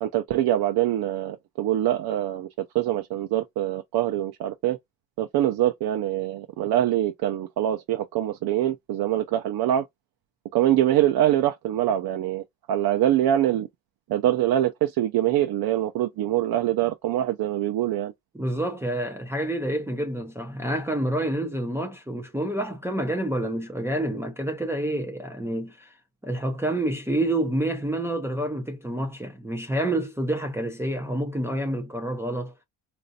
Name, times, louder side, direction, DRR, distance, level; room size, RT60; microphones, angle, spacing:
voice 1, 0.0-2.5 2.7-4.8 5.2-9.8 10.5-13.7 14.1-18.1, right 12 dB, 85° right, 0.6 m, -24 dB
voice 2, 18.3-25.9 26.2-32.5, right 1 dB, 5° right, 0.5 m, -28 dB
4.1 x 2.5 x 2.6 m
cardioid pair, 160°, 36 cm